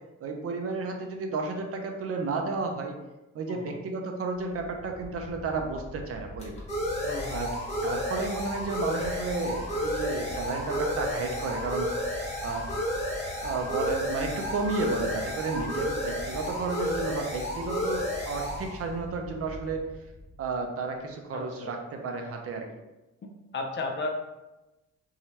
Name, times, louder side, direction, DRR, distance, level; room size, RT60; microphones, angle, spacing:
voice 1, 0.2-3.0 3.3-6.5 7.3-12.1 12.4-12.7 13.4-19.9 20.4-22.7, right 3 dB, 50° right, 3 dB, 0.5 m, -32 dB
voice 2, 3.5-3.8 7.0-7.5 21.3-21.8 23.5-24.1, left 3 dB, 40° left, 3 dB, 0.5 m, -34 dB
sound 1, 4.8-20.2, equal, 20° left, 1.0 m, -32 dB
sound 2, 9.5-16.3, right 1 dB, 15° right, 1.3 m, -45 dB
2.7 x 2.3 x 3.1 m, 1.0 s
cardioid pair, 90°, 30 cm